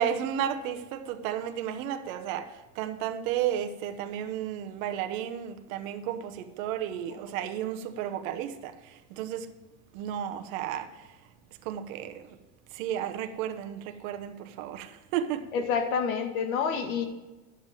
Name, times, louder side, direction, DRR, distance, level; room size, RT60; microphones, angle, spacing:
voice 1, 0.0-9.5 9.9-11.1 11.6-12.3 12.7-15.4, right 10 dB, 75° right, 1.1 m, -33 dB
voice 2, 15.5-17.1, left 6 dB, 80° left, 1.9 m, -28 dB
11.0 x 7.6 x 7.5 m
supercardioid pair, 100°, 41 cm